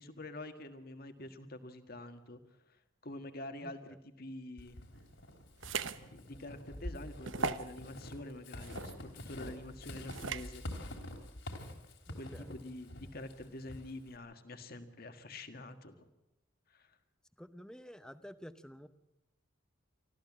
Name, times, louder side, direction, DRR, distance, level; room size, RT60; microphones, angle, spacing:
voice 1, 0.0-2.4 3.0-4.8 6.1-10.6 12.2-16.1 16.7-16.9, left 1 dB, 50° left, 8 dB, 1.7 m, -46 dB
voice 2, 3.6-4.0 12.1-12.5 17.4-18.9, equal, 5° left, 11 dB, 0.8 m, -51 dB
Walk footsteps / Squeak, 4.6-14.2, left 1 dB, 70° left, 3.3 m, -47 dB
sound 1, 5.6-6.0 6.5-6.6 7.2-7.7 8.6-8.9 10.1-10.5, right 5 dB, 75° right, 0.9 m, -37 dB
24.5 x 14.5 x 7.4 m, 0.96 s
head